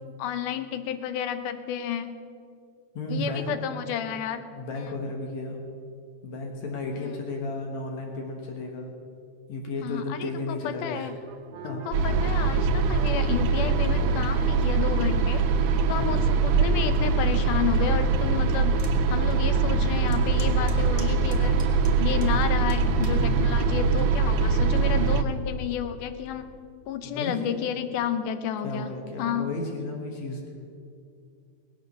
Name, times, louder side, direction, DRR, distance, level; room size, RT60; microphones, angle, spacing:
voice 1, 0.2-2.2 3.1-4.4 4.7-4.8 7.0-7.1 9.8-11.1 11.6-15.5 15.9-18.8 19.1-21.6 22.0-26.5 26.9-29.5, left 9 dB, 90° left, 10 dB, 2.4 m, -31 dB
voice 2, 2.9-3.6 4.5-5.6 6.2-8.9 9.5-11.1 11.6-11.8 15.9-16.4 27.0-27.4 28.6-30.4, left 2 dB, 65° left, 1 dB, 2.6 m, -33 dB
sound 1, 10.9-22.4, right 6 dB, 70° right, 2.2 m, -44 dB
sound 2, 11.9-25.2, right 4 dB, 85° right, 2.3 m, -23 dB
sound 3, 18.8-19.0 19.4-19.5 20.1-22.3 22.7-23.2 23.9-24.2, left 1 dB, 20° left, 0.8 m, -46 dB
19.0 x 8.6 x 6.7 m, 2.4 s
omnidirectional pair, 3.5 m